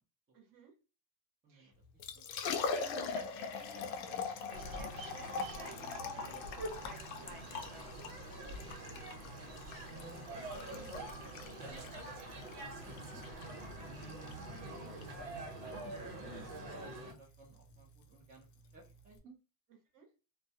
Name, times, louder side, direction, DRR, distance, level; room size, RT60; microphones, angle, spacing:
voice 1, 0.3-0.7 1.5-1.7 2.7-8.1 13.6-13.9 19.9-20.1, right 4 dB, 45° right, 2 dB, 0.8 m, -54 dB
voice 2, 1.4-2.2 9.8-13.2 13.8-18.5 18.7-19.4, right 2 dB, 20° right, -3 dB, 0.4 m, -56 dB
Liquid, 1.8-19.2, left 5 dB, 60° left, 0.5 m, -43 dB
sound 1, 4.5-17.1, right 1 dB, 85° right, 1.1 m, -46 dB
2.2 x 2.1 x 2.6 m, 0.32 s
cardioid pair, 150°, 46 cm